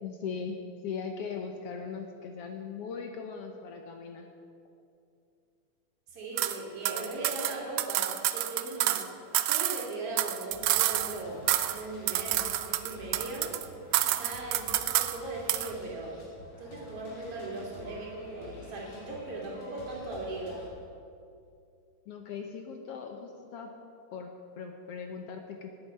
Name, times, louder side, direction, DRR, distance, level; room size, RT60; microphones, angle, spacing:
voice 1, 0.0-4.3 22.1-23.7 24.1-25.8, left 6 dB, 70° left, 4 dB, 1.5 m, -39 dB
voice 2, 6.1-9.1 9.4-13.5 14.1-16.2 16.6-20.6, right 2 dB, 50° right, -3 dB, 3.6 m, -39 dB
sound 1, 6.4-6.6 6.9-9.1 9.3-11.2 11.5-11.8 12.1-13.7 13.9-15.2 15.5-15.7, right 14 dB, 80° right, 1.7 m, -28 dB
sound 2, 10.5-20.7, left 2 dB, 90° left, 4.4 m, -50 dB
18.5 x 8.5 x 5.5 m, 2.4 s
omnidirectional pair, 3.4 m